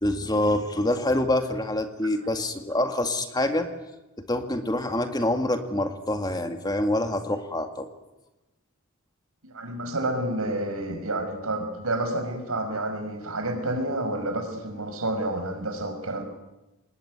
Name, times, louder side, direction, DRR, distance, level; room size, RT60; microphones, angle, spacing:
voice 1, 0.0-3.7 4.3-7.9, left 1 dB, 20° left, 7 dB, 2.1 m, -26 dB
voice 2, 9.4-16.2, right 1 dB, 90° right, 6 dB, 5.6 m, -29 dB
26.5 x 20.5 x 9.6 m, 1.0 s
head